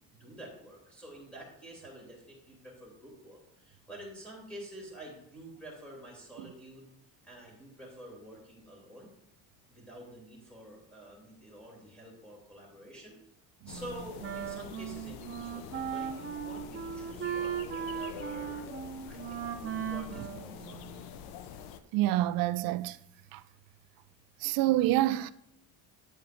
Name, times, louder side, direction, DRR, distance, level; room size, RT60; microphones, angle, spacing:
voice 1, 0.1-6.9 7.2-9.1 9.7-13.2 13.7-18.7 19.0-20.9, right 1 dB, 5° left, 2.7 m, -48 dB
sound 1, 13.7-21.8, left 9 dB, 80° left, 0.7 m, -46 dB
Wind instrument woodwind instrument, 13.7-21.2, right 8 dB, 35° right, 0.8 m, -38 dB
voice 2, 21.9-23.0 23.3-23.4 24.4-25.3, right 15 dB, 70° right, 0.5 m, -27 dB
8.9 x 8.3 x 2.5 m
cardioid pair, 125°, 36 cm